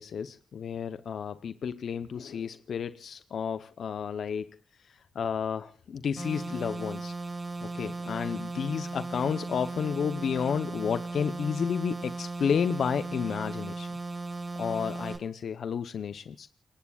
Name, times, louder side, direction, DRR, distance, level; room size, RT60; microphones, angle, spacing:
voice 1, 0.0-4.5 4.8-7.1 7.6-13.9 14.6-16.5, left 7 dB, 70° left, 13 dB, 0.8 m, -31 dB
sound 1, 6.2-15.2, right 3 dB, 35° right, 6.6 m, -37 dB
30.0 x 18.5 x 2.4 m, 0.42 s
supercardioid pair, 45°, 0 cm